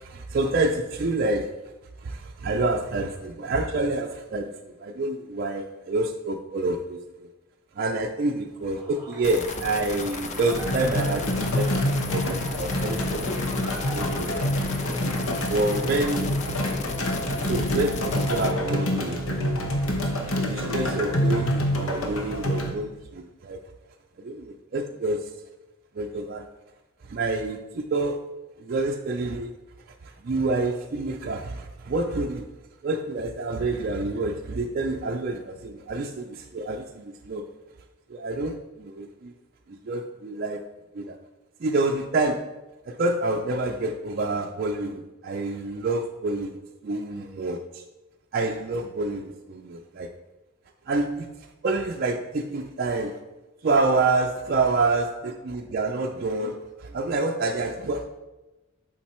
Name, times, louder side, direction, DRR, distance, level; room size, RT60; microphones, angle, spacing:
voice 1, 0.0-1.5 2.0-7.3 7.7-11.7 12.1-13.3 13.9-14.6 14.8-15.0 15.4-16.8 17.1-20.0 20.4-23.6 24.2-25.3 25.9-26.5 27.0-28.2 28.6-29.5 30.0-32.5 32.8-37.4 38.1-39.3 39.7-40.6 40.9-41.2 41.6-42.6 42.9-47.8 48.3-50.1 50.9-53.2 53.6-58.1, right 2 dB, 45° right, 2 dB, 0.4 m, -28 dB
Applause / Crowd, 8.6-16.7, right 1 dB, 5° right, 1.9 m, -41 dB
sound 1, 9.2-18.5, left 4 dB, 35° left, 0.4 m, -35 dB
sound 2, 10.5-22.7, left 1 dB, 80° left, 1.0 m, -27 dB
7.3 x 4.4 x 4.3 m, 1.1 s
head